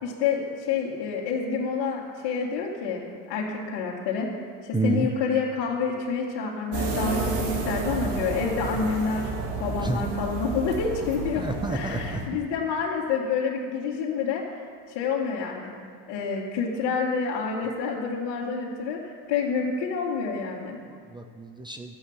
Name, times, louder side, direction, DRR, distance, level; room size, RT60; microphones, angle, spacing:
voice 1, 0.0-3.0 3.3-4.3 4.6-9.3 9.6-11.4 11.7-14.4 14.9-15.7 16.1-19.0 19.3-20.8, left 5 dB, 60° left, -7 dB, 2.2 m, -28 dB
voice 2, 4.7-5.1 9.8-10.0 11.4-12.2 20.9-22.0, right 3 dB, 10° right, 6 dB, 0.5 m, -29 dB
sound 1, 6.7-12.3, right 3 dB, 60° right, 2.2 m, -31 dB
12.0 x 7.1 x 8.0 m, 2.1 s
cardioid pair, 130°, 47 cm